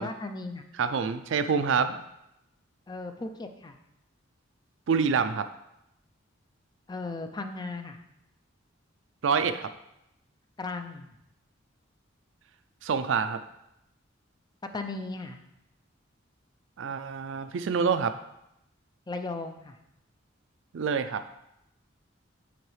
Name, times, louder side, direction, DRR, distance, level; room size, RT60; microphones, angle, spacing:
voice 1, 0.0-0.7 2.9-3.8 6.9-8.0 10.6-11.1 14.6-15.4 19.1-19.8, left 3 dB, 20° left, 6 dB, 0.4 m, -36 dB
voice 2, 0.8-2.0 4.9-5.5 9.2-9.7 12.8-13.4 16.8-18.1 20.7-21.2, right 6 dB, 65° right, 11 dB, 0.4 m, -26 dB
10.0 x 4.0 x 3.2 m, 0.84 s
head